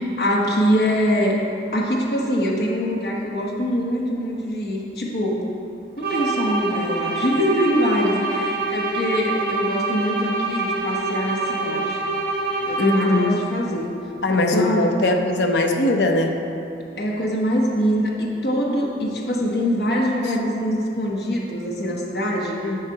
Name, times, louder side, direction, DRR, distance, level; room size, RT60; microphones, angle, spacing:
voice 1, 0.2-1.4 1.7-5.4 6.0-12.0 12.6-13.9 14.3-15.1 17.0-22.6, equal, 60° left, -2 dB, 1.1 m, -23 dB
sound 1, 6.0-13.5, right 3 dB, 60° right, 1.7 m, -26 dB
voice 2, 12.8-13.4 14.2-16.4 22.6-22.8, left 2 dB, 80° left, 4 dB, 0.7 m, -20 dB
8.9 x 5.7 x 4.8 m, 2.7 s
head